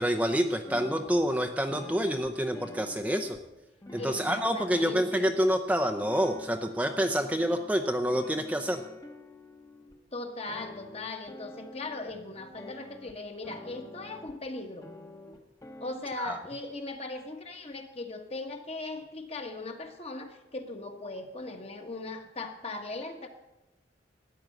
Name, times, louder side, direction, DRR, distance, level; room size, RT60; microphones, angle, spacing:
voice 1, 0.0-3.4 3.9-8.8 16.2-16.4, equal, 10° right, 5 dB, 0.6 m, -27 dB
sound 1, 0.7-1.2 1.7-3.5 3.8-5.5 6.0-7.7 8.1-10.0 10.5-13.2 13.4-14.3 14.8-15.9, left 1 dB, 20° left, 1.1 m, -47 dB
voice 2, 4.0-5.3 10.1-14.9 15.8-23.3, left 2 dB, 35° left, 5 dB, 1.4 m, -39 dB
13.5 x 9.5 x 7.7 m, 1.0 s
head